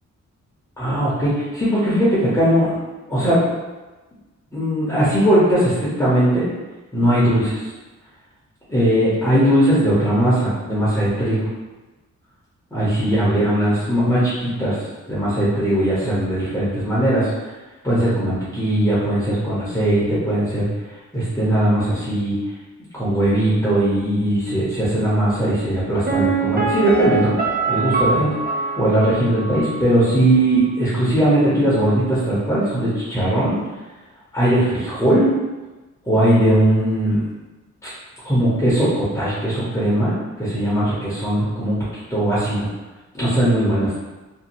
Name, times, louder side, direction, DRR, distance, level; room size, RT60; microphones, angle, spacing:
voice 1, 0.8-2.8 3.1-3.4 4.5-6.5 6.9-7.7 8.7-11.5 12.7-14.8 15.1-17.3 17.8-20.7 21.1-22.4 22.9-27.3 27.7-28.3 28.8-33.6 34.3-35.3 36.1-37.2 38.2-41.8 42.1-42.7 43.1-44.0, right 1 dB, 10° left, -10 dB, 0.6 m, -19 dB
Piano, 26.1-29.8 30.1-30.2, right 4 dB, 35° right, 0.4 m, -23 dB
2.6 x 2.3 x 2.8 m, 1.2 s
wide cardioid pair, 170°, 30 cm